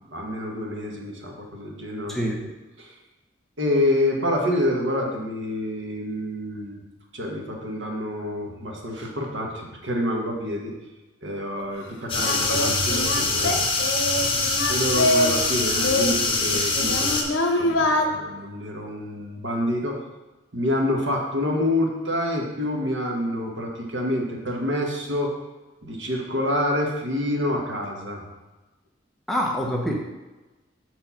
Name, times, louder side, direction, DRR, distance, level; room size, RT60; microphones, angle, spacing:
voice 1, 0.0-2.3 2.8-2.9 3.6-6.8 7.1-10.7 11.2-13.6 14.7-17.2 17.5-20.0 20.5-25.3 25.8-28.2, left 1 dB, 75° right, 0 dB, 1.4 m, -27 dB
voice 2, 2.1-2.4 29.3-30.0, equal, ahead, -1 dB, 0.7 m, -25 dB
Singing, 11.6-11.7 12.2-15.4 15.7-18.1, left 1 dB, 85° left, 0.9 m, -24 dB
sound 1, 12.1-17.2, left 3 dB, 25° left, 0.9 m, -24 dB
6.5 x 4.5 x 5.7 m, 1.1 s
head